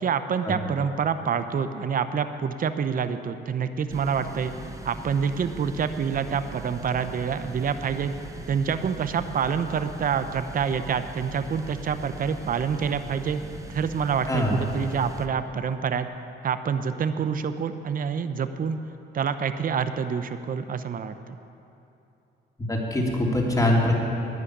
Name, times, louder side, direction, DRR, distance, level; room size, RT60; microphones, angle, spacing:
voice 1, 0.0-4.5 4.8-8.1 8.5-13.4 13.7-16.1 16.4-18.8 19.1-21.4, right 6 dB, 45° right, 10 dB, 0.7 m, -27 dB
sound 1, 3.9-15.3, right 3 dB, 15° right, 1.0 m, -40 dB
voice 2, 22.7-23.9, left 1 dB, 15° left, -2 dB, 3.1 m, -23 dB
11.5 x 9.6 x 9.6 m, 2.8 s
cardioid pair, 90°, 20 cm